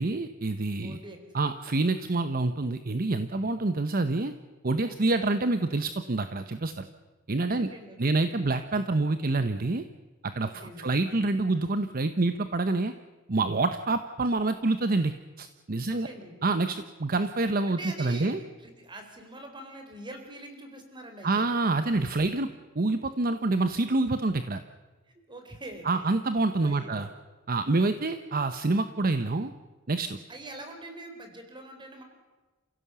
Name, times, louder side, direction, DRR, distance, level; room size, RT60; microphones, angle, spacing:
voice 1, 0.0-1.0 1.3-4.3 4.6-6.9 7.3-7.7 8.0-9.8 10.2-12.9 13.3-16.1 16.4-18.4 21.2-22.5 22.7-24.6 25.8-27.1 27.5-29.5 29.9-30.2, right 2 dB, 45° right, 10 dB, 0.9 m, -27 dB
voice 2, 0.8-1.5 4.8-5.3 7.5-8.1 10.4-10.9 15.9-16.4 17.7-18.3 18.6-21.5 25.1-25.9 26.6-27.1 30.3-32.0, right 1 dB, 25° right, 5 dB, 3.8 m, -44 dB
28.5 x 16.0 x 7.0 m, 1.2 s
head